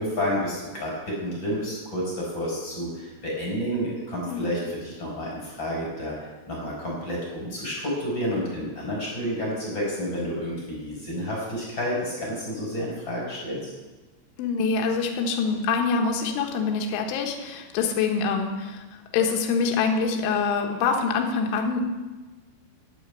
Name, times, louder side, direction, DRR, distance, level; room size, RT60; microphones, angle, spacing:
voice 1, 0.0-6.1 6.5-13.7, equal, 25° left, -4 dB, 4.7 m, -30 dB
voice 2, 14.4-18.8 19.1-21.8, left 5 dB, 75° left, 3 dB, 3.7 m, -25 dB
10.0 x 9.3 x 8.3 m, 1.2 s
omnidirectional pair, 5.7 m